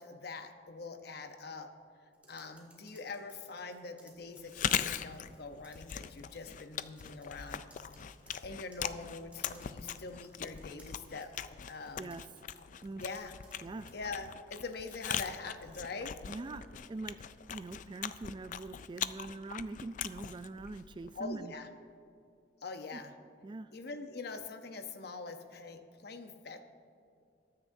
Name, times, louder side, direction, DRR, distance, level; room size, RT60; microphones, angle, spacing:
voice 1, 0.0-1.7 2.3-7.7 8.4-11.3 11.7-12.1 13.0-13.3 13.9-16.1 21.2-21.7 22.6-23.1 23.7-26.6, left 3 dB, 65° left, 7 dB, 0.8 m, -43 dB
sound 1, 2.1-5.4 5.6-6.6 7.0-13.6 13.9-14.1, right 2 dB, 10° right, 2.0 m, -63 dB
Chewing mastication, 4.4-21.3, left 9 dB, 45° left, 0.4 m, -40 dB
voice 2, 16.3-17.2 17.5-21.5 22.9-23.0 23.4-23.7, right 2 dB, 25° right, 13 dB, 0.3 m, -43 dB
21.0 x 9.8 x 2.7 m, 2.4 s
head